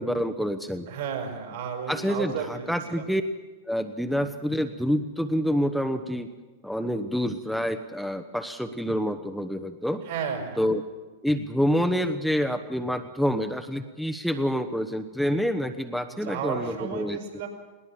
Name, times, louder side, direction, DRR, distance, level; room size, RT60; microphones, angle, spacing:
voice 1, 0.0-0.9 1.9-3.2 3.7-6.3 6.6-10.0 10.6-10.8 11.2-17.2, equal, ahead, 6 dB, 1.1 m, -27 dB
voice 2, 0.9-3.0 10.0-10.6 16.1-17.5, right 7 dB, 65° right, 3 dB, 5.9 m, -33 dB
20.5 x 18.5 x 7.5 m, 1.2 s
figure-of-eight pair, 95°, 0 cm